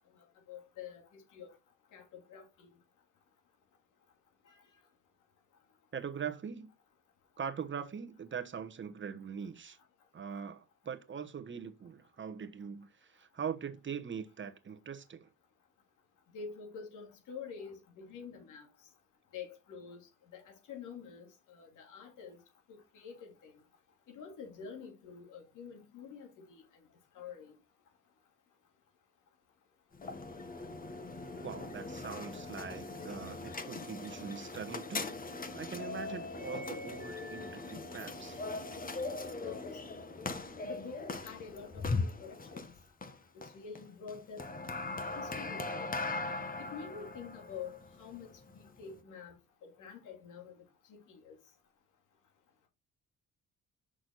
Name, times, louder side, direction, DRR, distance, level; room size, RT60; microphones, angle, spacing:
voice 1, 0.5-1.5 1.9-2.7 4.5-4.6 16.3-18.7 19.3-22.4 22.7-23.6 24.1-26.6 27.1-27.5 39.3-39.8 40.6-42.7 43.3-44.4 45.2-45.9 46.6-49.4 49.6-50.6 50.9-51.3, left 6 dB, 85° left, 2.9 m, -47 dB
voice 2, 5.9-6.7 7.4-9.8 10.1-15.3 31.4-35.2 35.5-38.4, right 7 dB, 40° right, 1.1 m, -42 dB
sound 1, 29.9-49.0, left 3 dB, 30° left, 1.2 m, -40 dB
6.2 x 6.2 x 4.0 m
cardioid pair, 90°, 30 cm